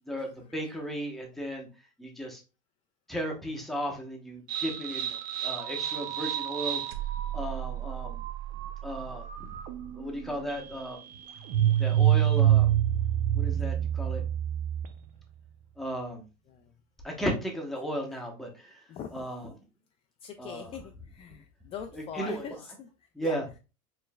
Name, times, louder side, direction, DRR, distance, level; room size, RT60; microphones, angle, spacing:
voice 1, 0.1-1.7 2.0-2.4 3.1-6.8 7.3-8.2 8.8-9.5 10.0-11.0 11.8-12.7 13.4-14.2 15.8-16.2 17.0-18.5 19.1-19.5 20.4-20.7 21.9-22.4 23.1-23.4, equal, ahead, 0 dB, 0.9 m, -35 dB
sound 1, 4.5-15.1, right 11 dB, 60° right, 0.6 m, -28 dB
voice 2, 18.9-19.3 20.2-22.9 23.2-23.4, left 8 dB, 35° left, 5 dB, 0.4 m, -42 dB
4.4 x 3.1 x 2.2 m, 0.31 s
supercardioid pair, 130°, 17 cm